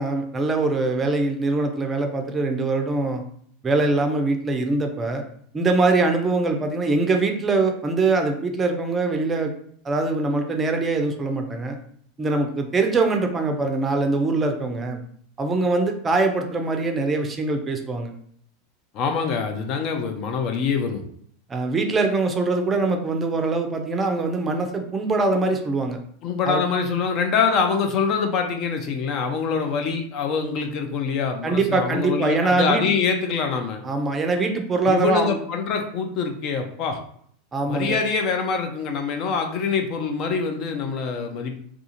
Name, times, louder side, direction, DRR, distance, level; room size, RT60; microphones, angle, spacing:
voice 1, 0.0-3.2 3.6-5.2 5.5-9.5 9.8-11.8 12.2-15.0 15.4-18.1 21.5-26.0 26.5-26.6 31.4-32.8 33.8-35.4 37.5-38.0, right 3 dB, 20° right, 5 dB, 0.4 m, -23 dB
voice 2, 18.9-21.0 26.2-33.8 34.9-37.0 37.7-41.6, left 5 dB, 45° left, 4 dB, 0.5 m, -25 dB
2.4 x 2.3 x 2.8 m, 0.62 s
figure-of-eight pair, 85°, 0 cm